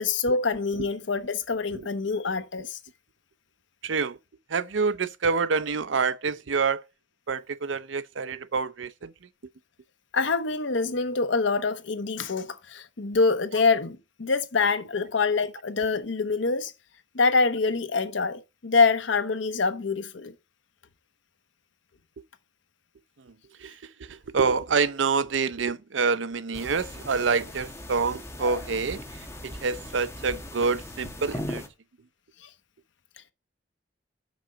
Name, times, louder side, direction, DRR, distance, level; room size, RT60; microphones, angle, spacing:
voice 1, 0.0-2.8 10.1-16.7 17.1-20.3, left 4 dB, 85° left, 0.9 m, -25 dB
voice 2, 3.8-4.2 4.5-6.8 7.3-9.1 23.2-23.3 23.6-31.6, right 5 dB, 85° right, 0.6 m, -27 dB
sound 1, 26.5-31.7, left 1 dB, 15° left, 1.3 m, -39 dB
6.1 x 4.9 x 6.6 m
head